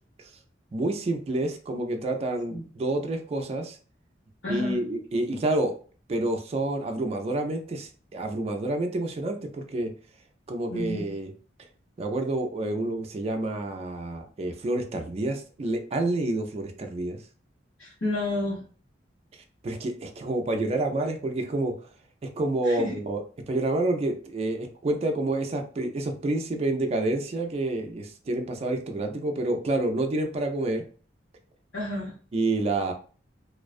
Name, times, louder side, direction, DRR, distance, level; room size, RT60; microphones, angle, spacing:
voice 1, 0.7-3.8 4.5-5.7 6.1-9.9 10.5-11.3 12.0-17.2 19.6-21.9 22.2-30.8 32.3-32.9, right 2 dB, 35° right, 4 dB, 0.4 m, -28 dB
voice 2, 4.4-4.8 10.7-11.1 17.8-18.6 22.6-23.0 31.7-32.1, left 1 dB, 70° left, -9 dB, 1.0 m, -31 dB
2.4 x 2.2 x 2.4 m, 0.40 s
head